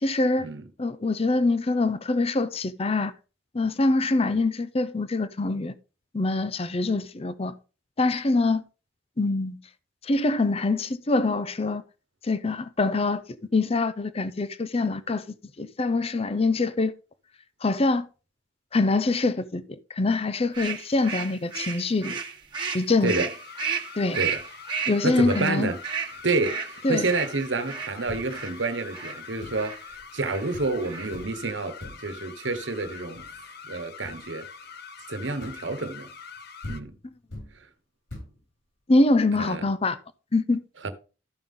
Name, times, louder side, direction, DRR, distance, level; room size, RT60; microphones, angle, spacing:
voice 1, 0.0-0.5 0.8-3.1 3.5-5.7 6.1-7.5 8.0-8.6 9.2-9.6 10.0-11.8 12.2-13.2 13.5-15.2 15.6-16.9 17.6-18.1 18.7-22.1 22.7-23.1 24.0-24.2 24.9-25.7 26.8-27.1 38.9-40.0 40.3-40.6, left 2 dB, 35° left, 0.6 m, -24 dB
sound 1, 20.5-28.5 28.9-29.2 29.6-29.8 30.2-30.5 30.8-31.2, right 6 dB, 25° right, 1.4 m, -33 dB
sound 2, 23.3-36.8, left 6 dB, 60° left, 0.9 m, -44 dB
voice 2, 25.0-25.8 26.2-29.8 30.1-33.2 33.7-34.5 35.1-36.1 36.7-36.9 39.4-39.6 40.8-40.9, right 3 dB, 80° right, 1.2 m, -28 dB
sound 3, 28.1-28.6 29.4-29.8 30.2-30.3 30.5-30.8 31.1-31.5 31.8-32.2 32.8-33.5 34.0-34.3 35.4-35.8 36.4-36.5 36.6-37.6 38.1-38.4, left 1 dB, 90° left, 5.5 m, -42 dB
13.5 x 5.5 x 3.7 m
head